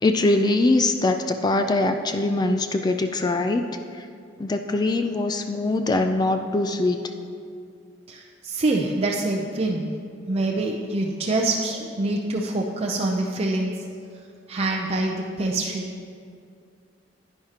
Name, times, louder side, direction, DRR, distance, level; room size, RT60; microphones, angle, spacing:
voice 1, 0.0-3.7 4.0-4.1 4.4-7.0, left 2 dB, 25° left, 7 dB, 0.3 m, -22 dB
voice 2, 8.1-9.9 10.3-13.7 14.5-15.9, right 2 dB, 35° right, 0 dB, 0.5 m, -25 dB
10.5 x 10.0 x 2.9 m, 2.3 s
head